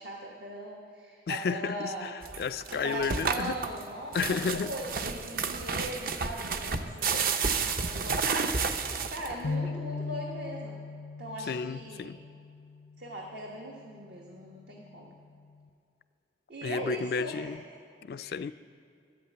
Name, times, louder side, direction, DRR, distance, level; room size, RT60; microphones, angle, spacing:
voice 1, 0.0-2.2 2.7-8.5 9.1-10.8 11.2-12.1 13.0-15.1 16.5-17.6 18.2-18.4, right 1 dB, 75° right, 1.3 m, -40 dB
voice 2, 1.3-3.6 4.1-4.7 11.5-12.2 16.6-17.6 18.0-18.5, left 5 dB, 55° left, 0.3 m, -32 dB
sound 1, 2.2-9.5, right 5 dB, 50° right, 0.6 m, -31 dB
sound 2, 9.4-15.7, left 4 dB, 90° left, 0.7 m, -40 dB
11.0 x 8.5 x 8.6 m
head